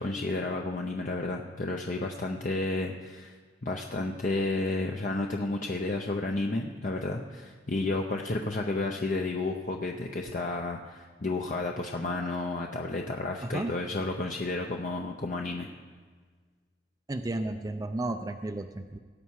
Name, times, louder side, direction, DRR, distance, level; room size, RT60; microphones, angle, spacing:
voice 1, 0.0-3.4 3.6-15.7, left 2 dB, 50° left, 1 dB, 0.7 m, -31 dB
voice 2, 13.4-13.7 17.1-19.0, right 2 dB, 20° right, 6 dB, 0.4 m, -33 dB
18.0 x 8.4 x 4.7 m, 1.5 s
head